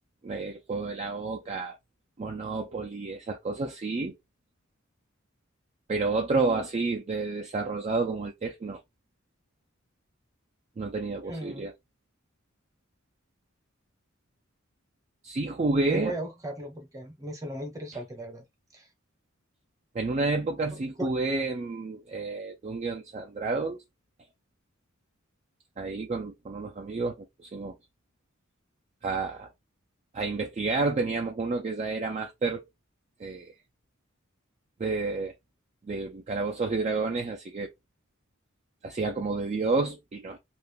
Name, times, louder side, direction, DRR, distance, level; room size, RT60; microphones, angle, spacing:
voice 1, 0.2-1.8 2.2-4.1 5.9-8.8 10.8-11.7 15.2-16.2 19.9-23.8 25.8-27.8 29.0-29.5 30.1-32.6 33.2-33.5 34.8-35.3 35.9-37.7 38.8-40.4, right 3 dB, 30° right, 0.4 m, -30 dB
voice 2, 11.3-11.7 15.9-18.4 18.7-18.9 21.0-21.1, right 1 dB, 15° right, 0.8 m, -36 dB
2.4 x 2.2 x 3.2 m
head